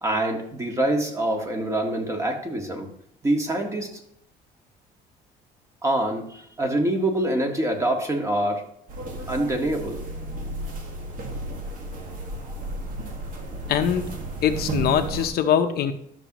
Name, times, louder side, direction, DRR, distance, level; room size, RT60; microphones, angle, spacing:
voice 1, 0.0-2.9 3.2-4.0 5.8-8.6 9.3-10.0, right 1 dB, 20° right, 2 dB, 1.7 m, -25 dB
sound 1, 8.9-15.3, right 2 dB, 55° right, 1.7 m, -33 dB
voice 2, 13.7-14.1 14.4-15.9, left 9 dB, 70° left, 7 dB, 0.8 m, -22 dB
12.0 x 6.1 x 3.0 m, 0.71 s
cardioid pair, 110°, 17 cm